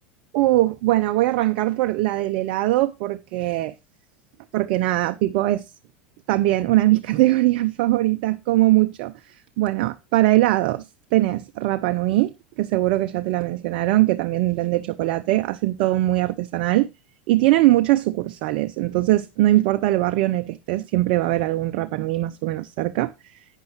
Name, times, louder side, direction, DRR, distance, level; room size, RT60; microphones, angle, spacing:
voice 1, 0.3-3.7 4.5-5.6 6.3-9.1 9.6-10.8 11.1-16.9 17.3-23.4, right 16 dB, 60° right, 0.7 m, -21 dB
11.5 x 9.1 x 3.0 m
hypercardioid pair, 90°, 5 cm